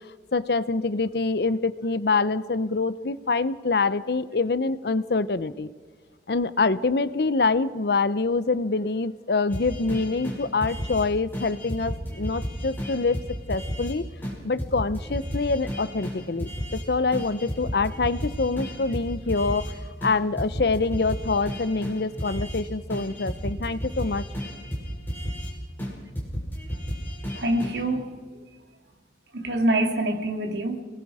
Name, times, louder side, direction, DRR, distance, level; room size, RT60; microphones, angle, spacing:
voice 1, 0.3-5.7 6.3-13.2 13.5-14.0 14.4-19.7 20.0-24.2, left 3 dB, 65° left, 15 dB, 0.7 m, -25 dB
sound 1, 9.5-11.1 11.3-13.9 14.2-14.3 14.6-16.8 17.1-19.7 20.0-22.6 22.9-25.5 25.8-27.8, equal, 10° left, 6.1 m, -33 dB
voice 2, 27.4-28.1 29.3-30.8, right 1 dB, 75° right, 4 dB, 2.3 m, -25 dB
29.5 x 19.5 x 4.9 m, 1.5 s
head